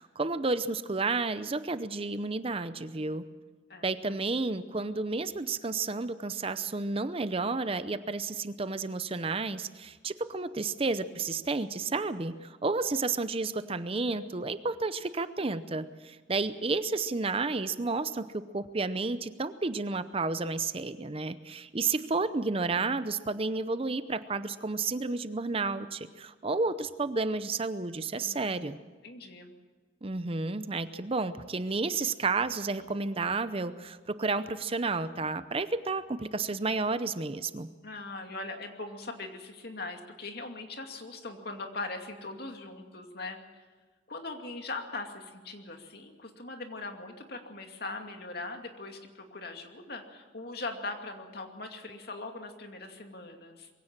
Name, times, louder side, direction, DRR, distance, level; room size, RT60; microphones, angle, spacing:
voice 1, 0.0-3.2 3.8-28.8 30.0-37.7, right 3 dB, 30° right, 12 dB, 0.7 m, -31 dB
voice 2, 3.7-4.2 28.1-28.8 29.0-29.5 37.8-43.6 44.1-53.7, left 3 dB, 55° left, 4 dB, 2.5 m, -41 dB
22.5 x 16.5 x 7.5 m, 1.4 s
head